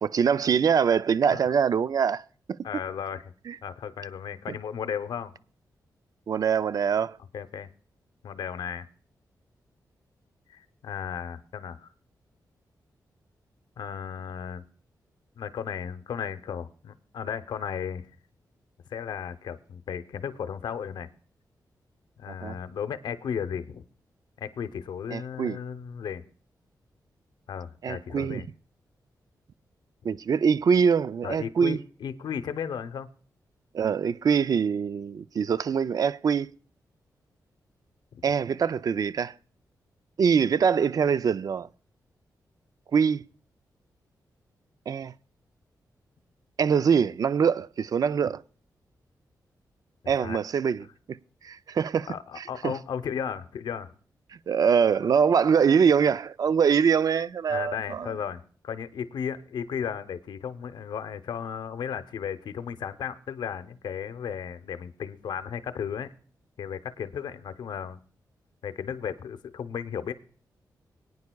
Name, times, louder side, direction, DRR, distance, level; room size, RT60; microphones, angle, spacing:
voice 1, 0.0-2.2 2.5-2.6 3.5-3.6 6.3-7.2 22.3-22.6 25.1-25.6 27.8-28.4 30.0-31.8 33.7-36.5 38.2-39.3 40.2-41.7 42.9-43.2 44.9-45.1 46.6-48.4 50.1-51.2 51.4-52.1 52.4-52.7 54.5-58.1, right 6 dB, 55° right, 0.4 m, -24 dB
voice 2, 2.6-3.3 3.6-5.3 7.3-7.7 8.2-8.9 10.5-11.9 13.8-14.6 15.4-18.0 18.9-21.1 22.2-23.8 24.4-26.2 27.5-28.5 31.2-33.1 38.1-38.2 50.0-50.4 52.1-53.9 57.5-66.1 66.6-68.0 68.6-70.1, left 7 dB, 85° left, 0.7 m, -35 dB
22.0 x 9.5 x 2.3 m
cardioid pair, 85°, 7 cm